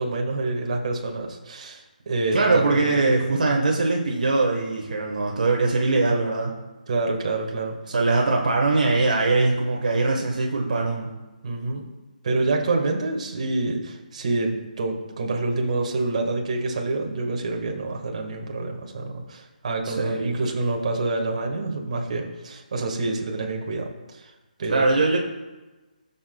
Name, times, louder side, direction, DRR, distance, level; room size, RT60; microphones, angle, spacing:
voice 1, 0.0-2.9 6.9-7.8 11.4-11.8 12.2-24.3 24.6-24.9, right 2 dB, 50° right, 1 dB, 1.8 m, -27 dB
voice 2, 2.3-6.5 7.9-11.1 19.8-20.4 24.7-25.2, right 3 dB, 65° right, 0 dB, 1.5 m, -22 dB
14.5 x 7.4 x 2.4 m, 1.2 s
figure-of-eight pair, 150°, 5 cm